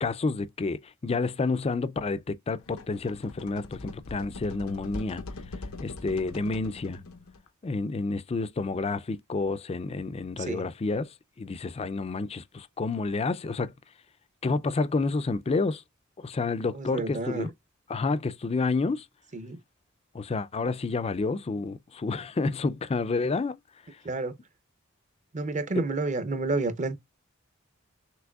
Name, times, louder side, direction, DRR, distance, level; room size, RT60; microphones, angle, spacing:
voice 1, 0.0-5.2 5.8-7.0 7.6-11.1 11.4-13.7 14.4-15.8 16.2-17.5 17.9-19.0 20.1-23.6, left 3 dB, 30° left, 0.4 m, -29 dB
sound 1, 2.6-7.5, left 3 dB, 90° left, 0.8 m, -42 dB
voice 2, 10.4-10.7 16.7-17.5 19.3-19.6 24.0-24.3 25.3-27.0, right 3 dB, 35° right, 0.7 m, -30 dB
6.1 x 3.0 x 2.3 m
head